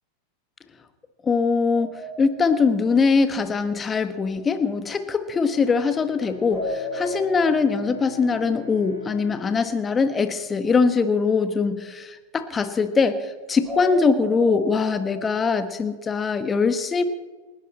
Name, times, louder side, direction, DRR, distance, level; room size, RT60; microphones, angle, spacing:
voice 1, 1.2-17.0, left 5 dB, 20° left, 10 dB, 1.4 m, -22 dB
sound 1, 1.7-3.8 6.5-9.4 13.6-15.9, left 1 dB, 5° right, 6.2 m, -35 dB
Bowed string instrument, 5.5-11.1, left 3 dB, 80° right, 4.0 m, -44 dB
29.0 x 11.5 x 4.3 m, 1.3 s
figure-of-eight pair, 90°, 0 cm